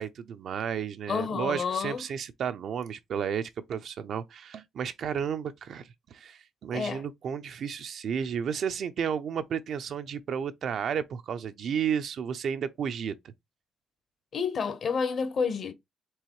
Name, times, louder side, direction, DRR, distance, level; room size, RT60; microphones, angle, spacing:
voice 1, 0.0-13.1, right 7 dB, 65° right, 0.5 m, -32 dB
voice 2, 1.1-2.0 6.7-7.0 14.3-15.7, left 5 dB, 55° left, 0.9 m, -29 dB
4.6 x 3.1 x 3.0 m
cardioid pair, 90°, 0 cm